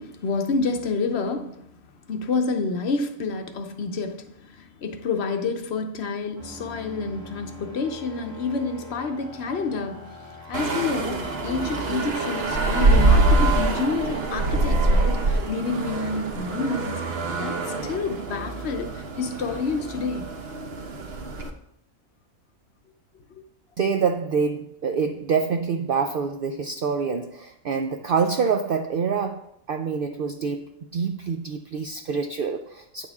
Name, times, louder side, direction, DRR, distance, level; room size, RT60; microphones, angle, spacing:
voice 1, 0.0-1.7 2.1-17.1 17.3-20.3, left 4 dB, 55° left, 0.9 m, -29 dB
sound 1, 6.4-13.9, left 2 dB, 30° right, 1.8 m, -42 dB
sound 2, 10.5-21.5, right 2 dB, 50° right, 0.9 m, -24 dB
voice 2, 23.8-33.1, right 5 dB, 90° right, 0.4 m, -26 dB
9.2 x 6.9 x 3.5 m
omnidirectional pair, 1.5 m